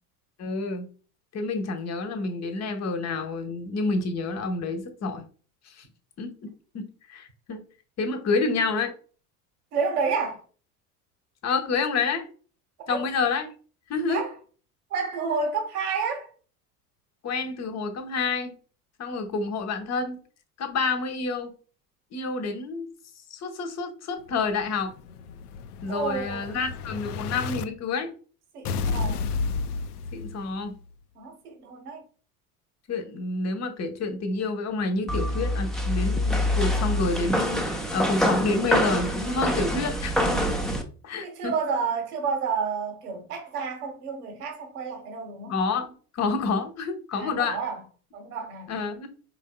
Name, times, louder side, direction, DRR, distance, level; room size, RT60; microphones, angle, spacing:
voice 1, 0.4-0.9 1.3-5.3 5.7-5.9 6.2-7.6 8.0-8.9 11.4-12.3 12.9-13.5 13.9-14.2 17.2-18.6 19.0-20.2 20.6-21.5 22.1-22.9 23.3-24.9 25.8-28.1 30.1-30.7 32.9-40.5 41.0-41.5 45.5-47.6 48.7-49.1, left 4 dB, 35° left, 1.1 m, -28 dB
voice 2, 9.7-10.4 12.9-13.0 14.1-14.3 14.9-16.3 25.9-26.6 28.5-29.3 31.1-32.0 41.2-45.5 47.1-47.8 48.1-48.7, right 5 dB, 75° right, 1.4 m, -30 dB
Explosion, 24.3-27.6 28.6-30.7, left 4 dB, 75° left, 0.6 m, -32 dB
sound 1, 35.1-40.8, left 1 dB, ahead, 0.7 m, -25 dB
5.0 x 3.7 x 2.2 m
hypercardioid pair, 75°, 46 cm